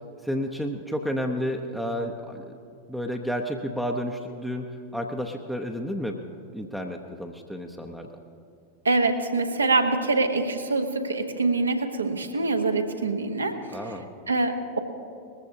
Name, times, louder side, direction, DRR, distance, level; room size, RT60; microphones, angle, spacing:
voice 1, 0.2-2.5 2.9-4.7 4.9-6.2 6.5-8.1 13.7-14.1, equal, ahead, 1 dB, 0.8 m, -31 dB
voice 2, 8.8-13.5 14.3-14.8, right 3 dB, 75° right, 5 dB, 1.2 m, -24 dB
20.5 x 14.5 x 2.8 m, 2.4 s
figure-of-eight pair, 90°, 0 cm